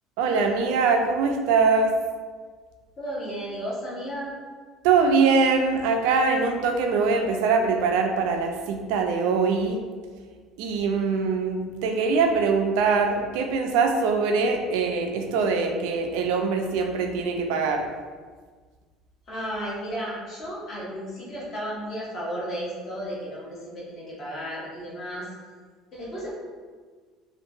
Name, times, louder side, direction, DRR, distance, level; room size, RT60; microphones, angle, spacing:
voice 1, 0.2-1.9 4.8-9.8 10.6-17.9, right 4 dB, 85° right, 4 dB, 0.3 m, -23 dB
voice 2, 3.0-4.4 19.3-25.3 25.9-26.3, equal, 35° left, -6 dB, 0.7 m, -33 dB
2.7 x 2.2 x 2.6 m, 1.5 s
cardioid pair, 175°, 0 cm